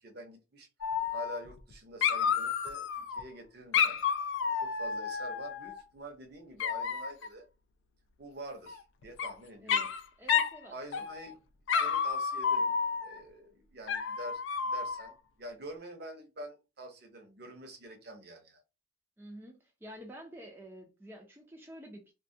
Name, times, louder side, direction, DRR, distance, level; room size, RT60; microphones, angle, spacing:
voice 1, 0.0-0.7 1.1-4.0 4.6-7.4 8.2-9.9 10.7-11.4 11.8-12.7 13.0-18.6, right 1 dB, 55° right, 0.6 m, -46 dB
Dog, 0.8-1.7 2.0-3.2 3.7-5.8 6.6-7.3 8.7-9.3 9.7-10.0 10.3-10.6 10.9-11.3 11.7-13.2 13.9-15.1, left 7 dB, 75° left, 0.3 m, -31 dB
voice 2, 9.6-9.9 10.2-11.1 19.2-22.1, equal, 10° right, 0.4 m, -49 dB
2.2 x 2.1 x 2.6 m
head